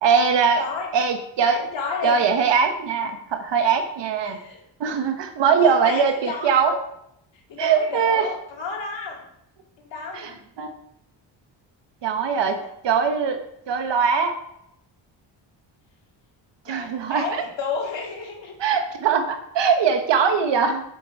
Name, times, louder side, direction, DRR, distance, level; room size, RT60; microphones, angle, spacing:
voice 1, 0.0-0.6 0.9-1.6 2.0-4.4 4.8-6.8 7.6-8.3 10.1-10.7 12.0-12.6 12.8-14.4 16.7-17.4 18.6-20.8, right 6 dB, 70° right, 6 dB, 1.4 m, -21 dB
voice 2, 0.6-0.9 1.5-2.3 4.2-4.6 5.5-6.6 7.5-9.2 9.9-10.4 12.3-12.5 16.6-18.5, left 4 dB, 75° left, -1 dB, 2.8 m, -31 dB
8.0 x 7.1 x 4.7 m, 0.77 s
cardioid pair, 105°, 44 cm